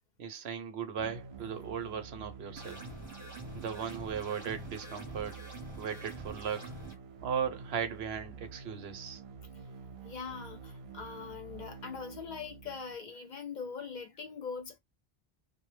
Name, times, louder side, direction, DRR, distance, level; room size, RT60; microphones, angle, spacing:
voice 1, 0.2-2.8 3.5-5.4 5.8-6.7 7.2-9.2, right 7 dB, 80° right, 0.9 m, -37 dB
sound 1, 1.0-12.9, right 5 dB, 55° right, 0.4 m, -48 dB
sound 2, 2.6-6.9, right 1 dB, 20° right, 0.7 m, -46 dB
voice 2, 10.0-14.8, left 5 dB, 55° left, 0.6 m, -42 dB
2.1 x 2.0 x 3.1 m
omnidirectional pair, 1.1 m